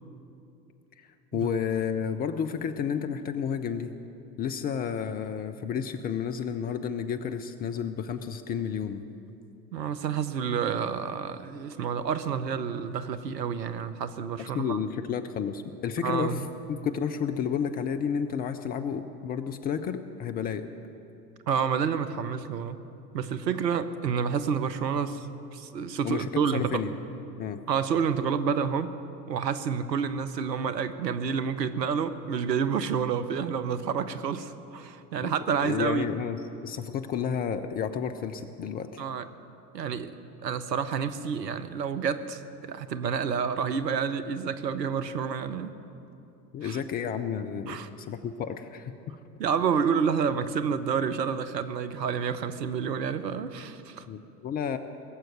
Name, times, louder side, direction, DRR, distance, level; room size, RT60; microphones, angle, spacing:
voice 1, 1.0-3.9 4.4-9.0 14.5-16.4 16.7-20.7 26.0-26.3 26.5-26.9 27.4-27.6 35.2-35.3 35.6-39.0 46.5-48.9 54.1-54.8, left 7 dB, 20° left, 9 dB, 0.4 m, -31 dB
voice 2, 9.7-14.8 16.0-16.5 21.5-22.8 23.1-25.3 25.5-26.8 27.7-28.9 29.3-36.1 39.0-39.3 39.7-45.7 46.6-46.8 47.7-47.9 49.4-54.1, right 6 dB, 75° right, 12 dB, 0.9 m, -29 dB
19.5 x 7.7 x 9.4 m, 2.8 s
figure-of-eight pair, 80°, 50 cm